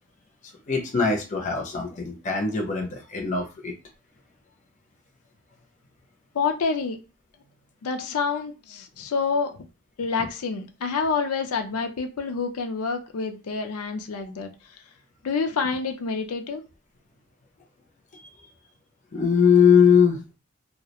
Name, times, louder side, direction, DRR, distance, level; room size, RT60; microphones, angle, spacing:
voice 1, 0.7-3.7 18.1-18.3 19.1-20.2, left 6 dB, 35° left, 1 dB, 0.5 m, -21 dB
voice 2, 6.3-7.0 7.8-9.6 10.0-14.5 15.2-16.6, left 5 dB, 85° left, 5 dB, 0.5 m, -27 dB
2.3 x 2.0 x 2.8 m, 0.30 s
head